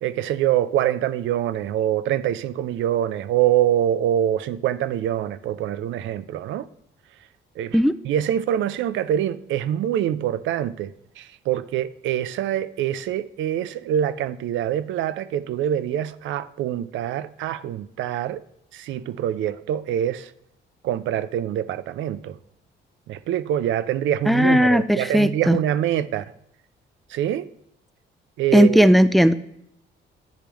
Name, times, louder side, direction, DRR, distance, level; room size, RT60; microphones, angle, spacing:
voice 1, 0.0-6.7 7.6-7.8 8.0-18.4 18.7-20.3 20.8-22.4 23.1-26.2 27.1-27.4 28.4-28.9, right 11 dB, 75° right, 0.4 m, -25 dB
voice 2, 24.3-25.6 28.5-29.3, equal, ahead, 0.3 m, -16 dB
10.0 x 3.4 x 3.0 m
cardioid pair, 90°, 20 cm